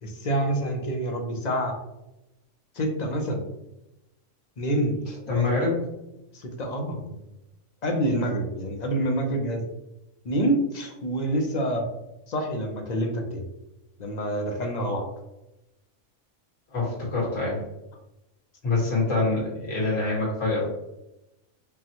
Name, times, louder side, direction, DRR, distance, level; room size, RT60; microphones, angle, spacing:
voice 1, 0.0-1.7 2.7-3.4 4.6-5.0 5.3-5.5 6.3-7.2 7.8-9.6 10.2-11.9 12.3-13.4 14.0-15.1, right 1 dB, 45° left, 3 dB, 0.6 m, -27 dB
voice 2, 5.1-5.9 6.6-6.7 16.7-17.6 18.6-20.7, left 3 dB, 85° left, -5 dB, 2.0 m, -25 dB
5.2 x 2.1 x 2.9 m, 0.92 s
omnidirectional pair, 1.3 m